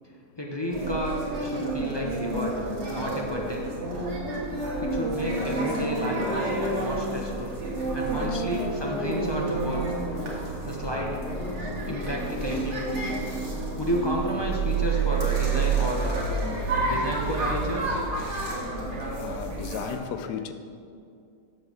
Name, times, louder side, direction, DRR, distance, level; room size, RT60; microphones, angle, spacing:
voice 1, 0.4-2.5 2.9-3.7 4.8-7.5 7.9-9.8 10.6-11.2 11.9-12.9 13.8-16.3 16.8-18.0, equal, 20° left, 0.7 m, -31 dB
sound 1, 0.7-19.9, right 3 dB, 40° right, 1.8 m, -29 dB
voice 2, 8.1-8.4 19.2-20.5, left 8 dB, 75° left, 1.1 m, -35 dB
13.0 x 7.0 x 3.6 m
omnidirectional pair, 1.9 m